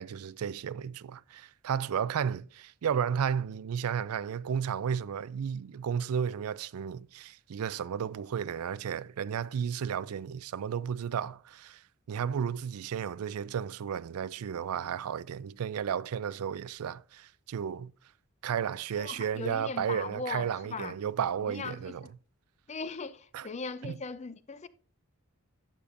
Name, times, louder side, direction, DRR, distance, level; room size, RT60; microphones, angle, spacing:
voice 1, 0.0-11.8 12.1-17.9 18.4-22.0 23.3-23.5 23.8-23.9, right 8 dB, 80° right, 0.4 m, -33 dB
voice 2, 19.0-21.0 21.4-22.1 22.7-24.7, left 4 dB, 30° left, 0.4 m, -39 dB
12.0 x 8.5 x 2.5 m
head